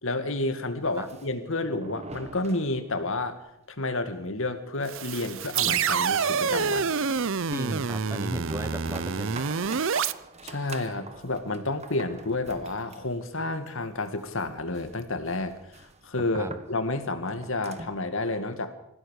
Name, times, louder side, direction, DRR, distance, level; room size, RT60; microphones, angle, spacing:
voice 1, 0.0-3.4 3.8-6.9 10.4-18.7, left 2 dB, 60° left, 9 dB, 2.2 m, -30 dB
sound 1, 0.8-3.2 3.5-3.6 3.9-4.0 4.4-18.1, right 2 dB, 30° right, 1.4 m, -45 dB
sound 2, 4.9-10.1, right 6 dB, 60° right, 0.7 m, -27 dB
voice 2, 7.5-9.4 16.4-16.5, right 1 dB, 10° right, 11 dB, 1.0 m, -35 dB
26.0 x 16.0 x 6.6 m, 0.80 s
head